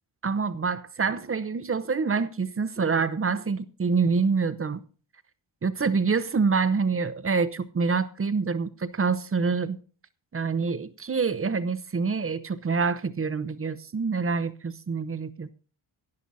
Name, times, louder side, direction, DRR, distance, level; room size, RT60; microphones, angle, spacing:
voice 1, 0.2-4.8 5.6-9.8 10.3-15.5, right 5 dB, 25° right, 0.7 m, -26 dB
17.0 x 11.0 x 2.7 m
cardioid pair, 100°, 50 cm